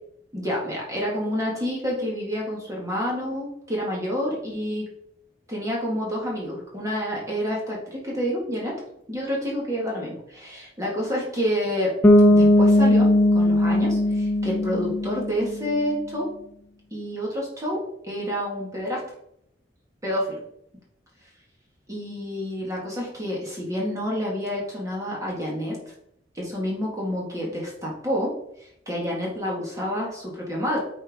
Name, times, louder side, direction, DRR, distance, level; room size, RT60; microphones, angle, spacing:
voice 1, 0.3-4.9 5.5-8.8 9.1-11.9 12.3-13.1 13.3-16.3 16.9-19.0 20.0-20.4 21.9-25.9 26.4-30.8, equal, 20° right, -3 dB, 1.8 m, -28 dB
Bass guitar, 12.0-15.8, left 1 dB, 15° left, 0.9 m, -18 dB
9.8 x 4.6 x 3.6 m, 0.75 s
head